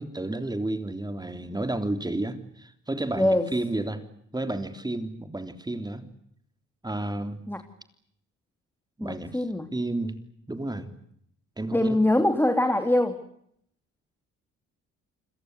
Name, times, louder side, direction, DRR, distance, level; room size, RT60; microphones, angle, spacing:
voice 1, 0.0-4.0 4.3-6.0 6.8-7.4 9.0-9.4 9.7-10.2 10.5-10.9 11.6-12.0, right 2 dB, 15° right, 9 dB, 3.5 m, -31 dB
voice 2, 3.1-3.5 7.5-7.6 9.0-9.7 11.7-13.2, left 1 dB, 5° left, 6 dB, 2.8 m, -23 dB
29.5 x 21.5 x 8.0 m, 0.71 s
cardioid pair, 90°, 30 cm